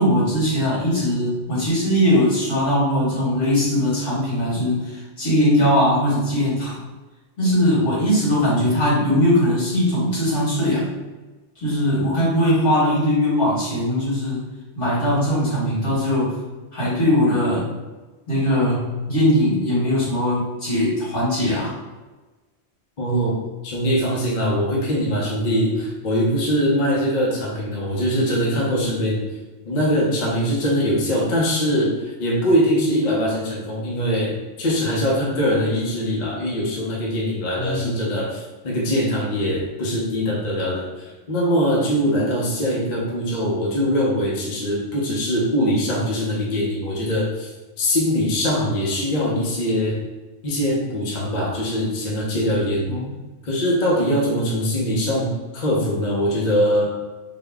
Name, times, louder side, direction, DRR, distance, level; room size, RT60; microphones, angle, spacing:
voice 1, 0.0-6.8 7.4-10.9 11.6-14.4 14.8-16.4 16.7-17.7 18.3-21.7 37.6-38.0 52.9-53.1, equal, 75° left, -9 dB, 1.9 m, -20 dB
voice 2, 23.0-29.3 29.7-50.0 50.4-52.9 53.4-56.9, equal, 45° left, -4 dB, 0.7 m, -22 dB
3.5 x 2.2 x 3.5 m, 1.2 s
omnidirectional pair, 1.3 m